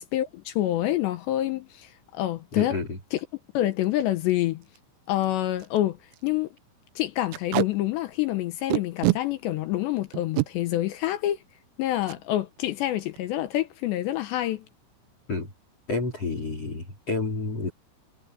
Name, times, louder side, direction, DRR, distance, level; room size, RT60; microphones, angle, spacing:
voice 1, 0.0-2.8 3.1-3.2 3.5-4.6 5.1-6.0 6.2-6.5 7.0-11.4 11.8-14.7, left 14 dB, 75° left, 2.7 m, -27 dB
voice 2, 2.6-3.0 15.3-15.5 15.9-17.7, left 3 dB, 30° left, 4.6 m, -29 dB
Packing tape duct tape, 3.7-3.9 4.3-4.4 4.6-4.8 5.2-5.3 5.6-5.8 6.1-6.3 7.3-7.7 8.7-9.2 10.1-10.5 12.0-12.2 12.6-12.7 13.0-13.4, right 20 dB, 90° right, 3.6 m, -25 dB
omnidirectional pair, 6.0 m